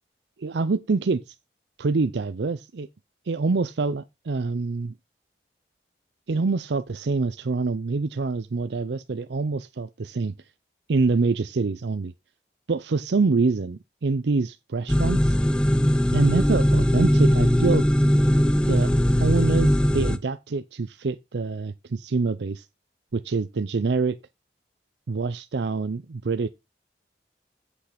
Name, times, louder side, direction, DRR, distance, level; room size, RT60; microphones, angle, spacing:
voice 1, 0.4-1.2 1.8-2.9 3.3-4.9 6.3-10.3 10.9-12.1 12.7-15.3 16.1-17.8 18.7-18.9 19.2-22.6 23.1-24.2 25.1-26.5, right 4 dB, 75° right, 0.5 m, -25 dB
sound 1, 14.9-20.2, equal, 5° left, 0.5 m, -20 dB
8.3 x 5.6 x 5.1 m
head